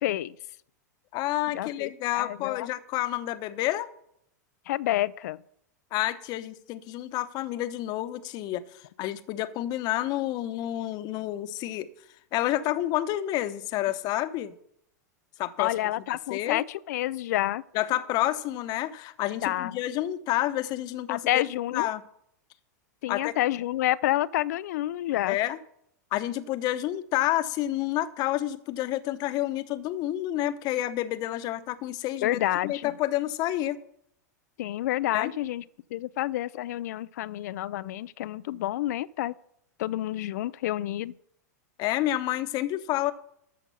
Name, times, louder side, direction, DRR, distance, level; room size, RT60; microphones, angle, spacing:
voice 1, 0.0-0.4 1.5-2.7 4.7-5.4 15.6-17.6 19.4-19.8 21.1-21.9 23.0-25.4 32.2-32.9 34.6-35.6 35.9-39.3 39.8-41.1, left 14 dB, 65° left, 0.5 m, -29 dB
voice 2, 1.1-3.9 5.9-8.6 9.0-11.9 12.3-14.5 15.4-15.7 16.3-16.6 17.7-21.4 21.7-22.0 23.1-23.3 25.3-25.6 26.1-33.8 35.1-35.3 41.8-43.1, left 14 dB, 45° left, 0.9 m, -29 dB
13.0 x 5.2 x 6.9 m
hypercardioid pair, 105°, 10 cm